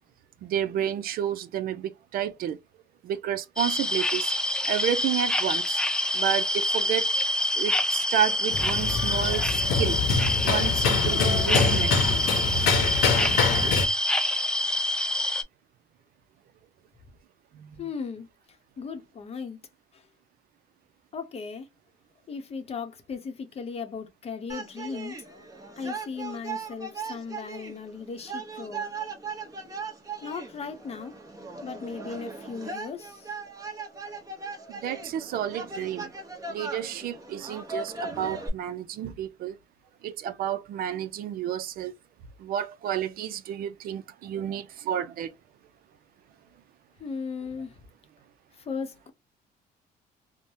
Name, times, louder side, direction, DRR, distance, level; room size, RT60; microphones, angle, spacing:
voice 1, 0.4-2.6 3.0-4.3 4.6-5.8 6.1-7.1 7.5-10.0 10.4-12.0 13.6-13.7 17.6-17.7 34.7-36.1 36.4-39.6 40.0-41.9 42.4-45.3, right 10 dB, 60° right, 0.4 m, -30 dB
sound 1, 3.6-15.4, left 1 dB, 5° left, 0.4 m, -26 dB
sound 2, 8.5-13.9, left 4 dB, 75° left, 0.9 m, -25 dB
voice 2, 17.8-18.3 18.8-19.6 21.1-21.7 22.3-25.2 25.8-28.9 30.2-31.2 31.6-33.3 47.0-47.7 48.7-49.1, left 5 dB, 35° left, 0.7 m, -36 dB
sound 3, 24.5-38.5, right 4 dB, 20° right, 0.9 m, -38 dB
3.2 x 2.1 x 2.6 m
cardioid pair, 110°, 17 cm